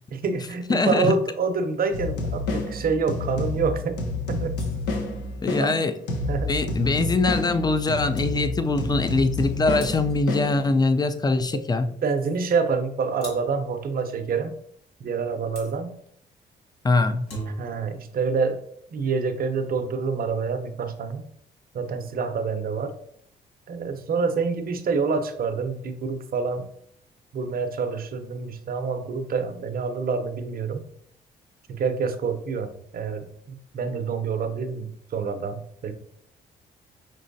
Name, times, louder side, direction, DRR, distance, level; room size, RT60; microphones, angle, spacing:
voice 1, 0.1-4.0 4.3-4.5 5.6-5.7 6.3-6.5 12.0-14.5 15.0-15.9 17.5-18.6 18.9-21.3 21.7-22.9 23.7-26.6 27.3-30.8 31.7-35.9, right 5 dB, 55° right, 8 dB, 0.7 m, -27 dB
voice 2, 0.7-1.1 5.4-5.9 6.5-11.9 16.8-17.2, left 3 dB, 20° left, 10 dB, 0.5 m, -22 dB
sound 1, 1.9-11.0, left 2 dB, 90° left, 0.7 m, -29 dB
sound 2, 4.5-5.1 7.8-7.9 8.1-8.3 9.8-10.3 13.2-13.6 15.6-15.8 17.1-17.9, right 1 dB, 70° left, 1.4 m, -39 dB
5.3 x 3.1 x 2.6 m, 0.67 s
supercardioid pair, 70°, 18 cm